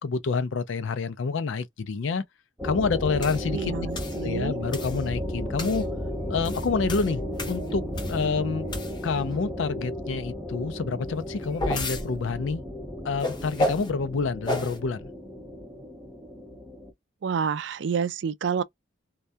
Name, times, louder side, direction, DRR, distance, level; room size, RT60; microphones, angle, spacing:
voice 1, 0.0-2.2 2.6-3.7 4.2-5.8 6.3-7.8 8.1-8.7 9.0-12.6 13.0-15.1, left 4 dB, 80° left, 0.4 m, -28 dB
sound 1, 2.6-16.9, equal, ahead, 0.9 m, -34 dB
sound 2, 3.2-3.4 4.0-4.2 4.7-5.0 5.6-5.8 6.3-8.3 8.7-9.2 11.1-12.1 13.2-13.9 14.5-14.8, left 1 dB, 25° left, 0.5 m, -31 dB
voice 2, 3.5-4.5 17.2-18.6, right 6 dB, 70° right, 0.3 m, -28 dB
2.2 x 2.2 x 2.6 m
head